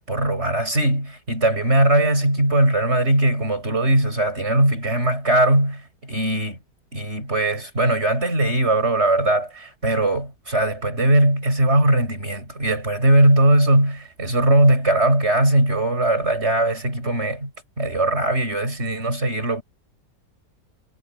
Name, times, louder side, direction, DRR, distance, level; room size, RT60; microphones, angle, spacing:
voice 1, 0.0-6.6 6.9-17.5 17.8-19.6, right 1 dB, 40° right, 8.1 m, -20 dB
omnidirectional pair, 1.8 m